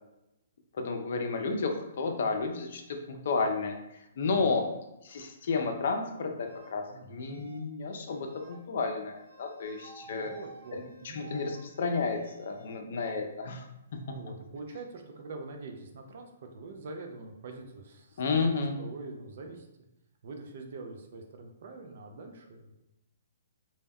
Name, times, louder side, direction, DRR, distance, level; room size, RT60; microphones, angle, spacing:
voice 1, 0.7-4.7 5.0-10.3 10.7-13.7 13.9-14.2 18.2-18.8, left 4 dB, 60° left, 4 dB, 0.4 m, -32 dB
voice 2, 4.3-4.6 6.9-7.5 10.0-11.2 14.1-19.7 20.2-22.7, right 3 dB, 60° right, 3 dB, 0.4 m, -44 dB
sound 1, 6.3-6.7 7.2-7.7 8.0-8.6 9.1-12.7, right 2 dB, 75° right, 0.9 m, -53 dB
2.1 x 2.1 x 3.5 m, 0.91 s
hypercardioid pair, 140°, 0 cm